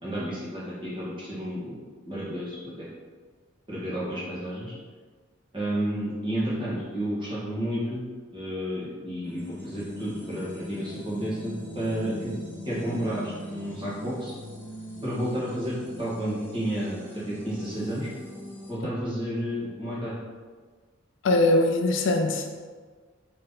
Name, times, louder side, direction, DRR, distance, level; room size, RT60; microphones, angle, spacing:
voice 1, 0.0-1.8 2.0-2.9 3.7-4.7 5.5-12.3 12.6-14.3 15.0-18.1 18.7-20.1, equal, 25° right, -8 dB, 1.4 m, -31 dB
sound 1, 9.2-18.7, equal, 10° left, 0.7 m, -41 dB
voice 2, 21.2-22.5, left 2 dB, 65° left, 4 dB, 0.4 m, -21 dB
4.0 x 3.3 x 3.8 m, 1.5 s
head